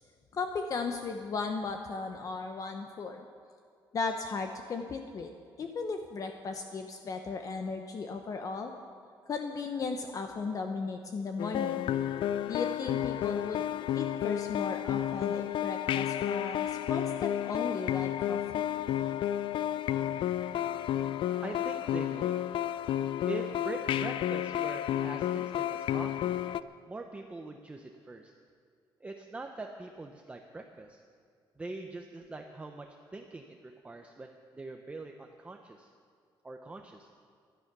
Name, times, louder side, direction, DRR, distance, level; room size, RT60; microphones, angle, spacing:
voice 1, 0.3-3.2 3.9-5.3 5.6-8.7 9.3-11.9 12.5-13.6 13.9-18.6, left 4 dB, 40° left, 5 dB, 0.9 m, -36 dB
sound 1, 11.4-26.6, left 11 dB, 70° left, 0.4 m, -31 dB
voice 2, 21.4-22.4 23.3-26.4 26.9-28.3 29.0-31.0 31.6-35.9 36.4-37.1, right 3 dB, 15° right, 3 dB, 0.7 m, -43 dB
16.5 x 11.5 x 6.0 m, 2.2 s
cardioid pair, 155°, 9 cm